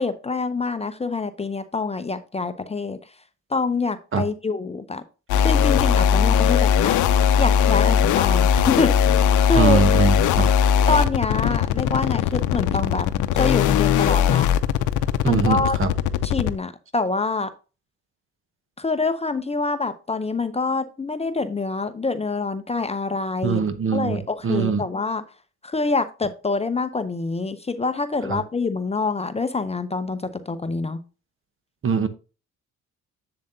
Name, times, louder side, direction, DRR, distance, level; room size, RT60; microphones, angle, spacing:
voice 1, 0.0-3.0 3.5-5.0 5.4-7.0 7.4-8.9 9.5-9.8 10.9-13.1 13.3-14.5 15.2-15.8 16.2-17.5 18.8-23.6 23.9-25.2 25.6-31.0, left 3 dB, 20° left, 10 dB, 0.7 m, -26 dB
sound 1, 5.3-16.6, left 8 dB, 80° left, 0.6 m, -19 dB
voice 2, 9.5-10.5 15.2-15.9 23.4-24.8 28.3-28.4 31.8-32.1, right 5 dB, 45° right, 12 dB, 1.0 m, -22 dB
7.8 x 7.1 x 2.7 m, 0.33 s
cardioid pair, 90°, 30 cm